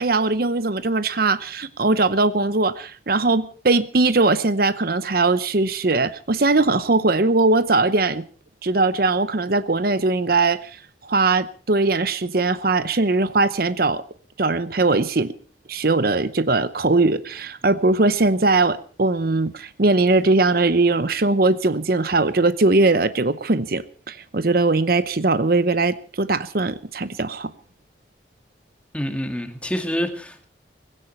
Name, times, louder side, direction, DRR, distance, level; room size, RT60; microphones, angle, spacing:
voice 1, 0.0-8.2 8.6-10.7 11.0-14.0 14.4-15.3 15.7-27.5, right 3 dB, 50° right, 14 dB, 0.8 m, -20 dB
voice 2, 28.9-30.4, equal, 5° left, 7 dB, 2.0 m, -27 dB
19.5 x 16.5 x 4.4 m, 0.41 s
head